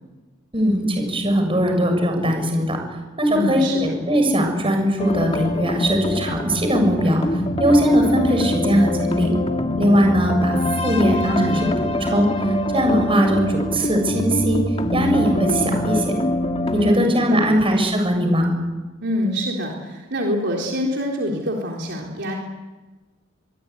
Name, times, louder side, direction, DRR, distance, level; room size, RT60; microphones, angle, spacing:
voice 1, 0.5-2.8 3.2-7.2 7.6-9.3 9.8-12.3 12.7-14.6 14.9-16.1 16.7-18.5, equal, 25° right, 4 dB, 7.3 m, -20 dB
voice 2, 3.3-3.9 16.8-17.6 19.0-22.4, left 1 dB, 60° right, -1 dB, 4.0 m, -25 dB
sound 1, 5.0-16.9, left 1 dB, 30° left, 1.7 m, -24 dB
24.5 x 24.0 x 9.8 m, 1.2 s
head